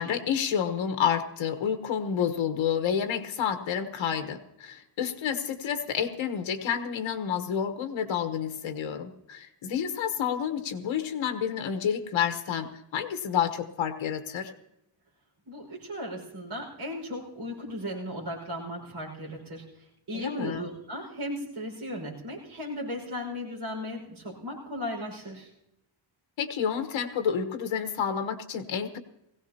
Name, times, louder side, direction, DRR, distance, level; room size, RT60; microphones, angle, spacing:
voice 1, 0.0-14.5 20.1-20.7 26.4-29.0, left 8 dB, 65° left, 8 dB, 1.3 m, -29 dB
voice 2, 15.5-19.6 20.1-25.5, equal, 50° right, -1 dB, 5.4 m, -36 dB
20.0 x 16.5 x 2.9 m, 0.85 s
wide cardioid pair, 150°, 50 cm